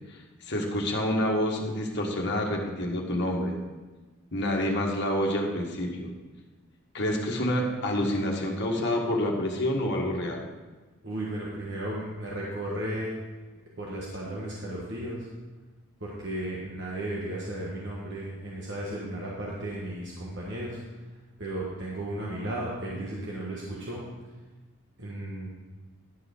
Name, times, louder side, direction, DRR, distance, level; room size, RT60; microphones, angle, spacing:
voice 1, 0.4-3.6 4.3-6.1 6.9-10.4, left 1 dB, 50° left, 0 dB, 1.6 m, -28 dB
voice 2, 11.0-13.2 13.8-15.3 16.0-20.8 21.4-24.0 25.0-25.5, right 1 dB, 55° right, -5 dB, 1.5 m, -34 dB
11.0 x 4.9 x 6.4 m, 1.3 s
head